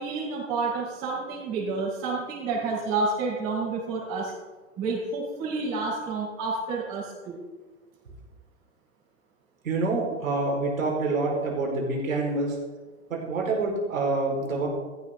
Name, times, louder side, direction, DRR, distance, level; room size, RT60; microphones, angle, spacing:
voice 1, 0.0-4.3 4.8-7.4, right 3 dB, 40° right, -7 dB, 4.9 m, -29 dB
voice 2, 9.6-12.6 13.1-14.7, right 3 dB, 80° right, -1 dB, 4.9 m, -27 dB
14.5 x 12.5 x 3.9 m, 1.3 s
hypercardioid pair, 120°, 39 cm